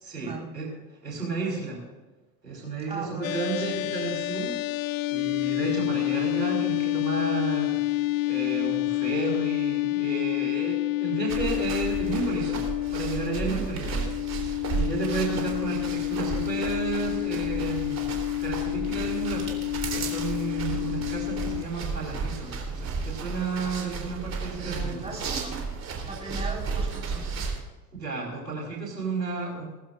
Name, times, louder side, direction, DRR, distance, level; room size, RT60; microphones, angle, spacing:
voice 1, 0.0-0.7 1.0-1.8 2.4-4.6 5.1-12.6 12.9-18.0 18.4-19.5 19.9-25.0 27.9-29.6, right 4 dB, 85° right, -2 dB, 4.6 m, -32 dB
voice 2, 2.9-3.8 13.4-13.7 24.6-25.7 26.0-27.3, right 3 dB, 15° right, -1 dB, 4.7 m, -38 dB
sound 1, 3.2-21.6, left 17 dB, 55° left, 0.6 m, -29 dB
sound 2, 11.3-27.6, right 4 dB, 35° right, 3.5 m, -34 dB
19.5 x 15.0 x 2.5 m, 1.2 s
figure-of-eight pair, 75°, 48 cm